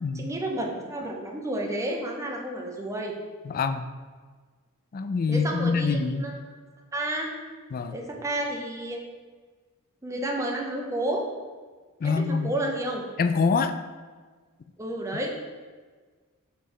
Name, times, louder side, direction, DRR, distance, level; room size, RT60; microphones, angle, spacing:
voice 1, 0.1-3.1 5.3-6.3 6.9-7.3 7.9-9.0 10.0-11.3 12.0-13.0 14.8-15.3, right 1 dB, 15° right, 0 dB, 0.7 m, -31 dB
voice 2, 3.4-3.9 4.9-6.3 7.7-8.0 12.0-12.5 13.2-13.8, left 4 dB, 40° left, 10 dB, 0.3 m, -25 dB
5.3 x 3.4 x 5.4 m, 1.5 s
head